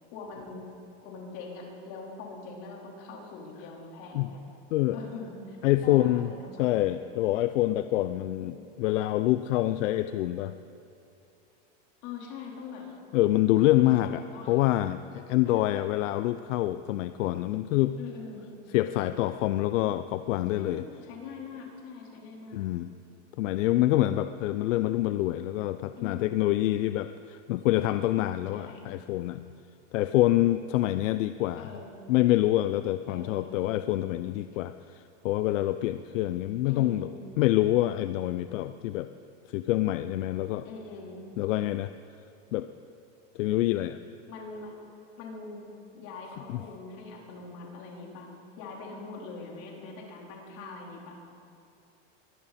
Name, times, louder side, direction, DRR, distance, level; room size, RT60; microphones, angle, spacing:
voice 1, 0.1-0.6 1.0-4.4 4.9-5.6 5.8-6.8 8.4-8.7 12.0-12.8 13.7-14.8 15.5-15.9 18.0-18.5 20.5-22.7 23.4-24.0 25.9-26.4 28.5-28.8 31.6-31.9 33.1-33.5 36.6-37.1 40.6-41.2 44.3-44.8 45.2-45.6 45.9-48.3 48.6-51.1, left 4 dB, 50° left, -2 dB, 4.2 m, -43 dB
voice 2, 5.6-6.3 6.6-10.5 13.1-18.0 18.7-20.8 22.5-22.9 23.4-29.5 29.9-31.7 32.1-37.1 37.4-39.1 39.5-40.6 41.4-41.9 42.5-42.7 43.4-44.0 46.5-46.6, left 15 dB, 80° left, 12 dB, 0.6 m, -26 dB
22.0 x 15.0 x 4.3 m, 2.6 s
supercardioid pair, 150°, 37 cm